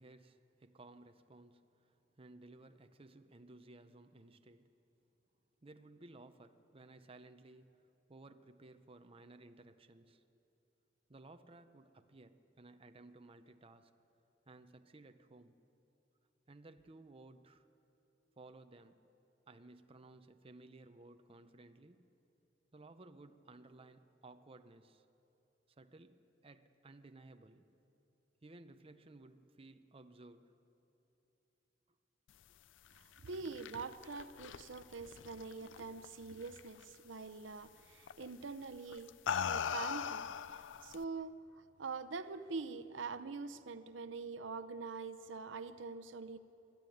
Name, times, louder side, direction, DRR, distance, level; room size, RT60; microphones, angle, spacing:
voice 1, 0.0-4.7 5.6-10.2 11.1-13.9 14.5-15.6 16.5-17.7 18.4-19.1 19.5-22.1 22.7-25.1 25.7-27.7 28.4-30.5, right 2 dB, 30° right, 8 dB, 0.7 m, -58 dB
voice 2, 33.0-39.1 39.4-41.4 41.8-46.4, right 4 dB, 80° right, 10 dB, 0.7 m, -44 dB
sound 1, 33.2-36.1 36.4-36.8 38.1-38.3 38.9-41.0, left 7 dB, 80° left, 0.5 m, -39 dB
22.0 x 13.0 x 9.3 m, 2.9 s
head